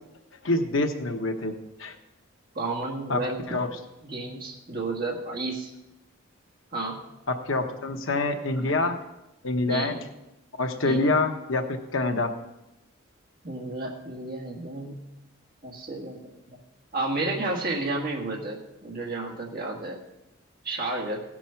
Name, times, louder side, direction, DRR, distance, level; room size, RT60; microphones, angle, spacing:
voice 1, 0.4-1.5 1.8-1.9 3.1-3.2 3.5-3.7 7.3-8.9 9.4-10.0 10.6-12.3, left 2 dB, 70° left, 5 dB, 1.0 m, -26 dB
voice 2, 2.5-3.4 4.0-5.7 6.7-7.0 9.7-9.9 10.8-11.1 13.4-15.0 15.6-16.2 16.5-16.6 16.9-20.0 20.6-21.2, right 2 dB, 45° right, -2 dB, 1.6 m, -31 dB
16.5 x 6.1 x 5.7 m, 0.92 s
head